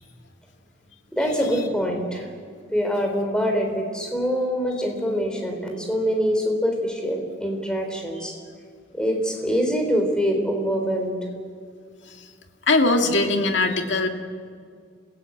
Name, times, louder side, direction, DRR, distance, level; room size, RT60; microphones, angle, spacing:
voice 1, 1.2-2.3 2.7-8.3 8.9-11.2, equal, 5° left, 2 dB, 3.5 m, -24 dB
voice 2, 12.7-14.1, left 2 dB, 80° left, 4 dB, 2.1 m, -20 dB
27.5 x 16.5 x 8.5 m, 2.1 s
head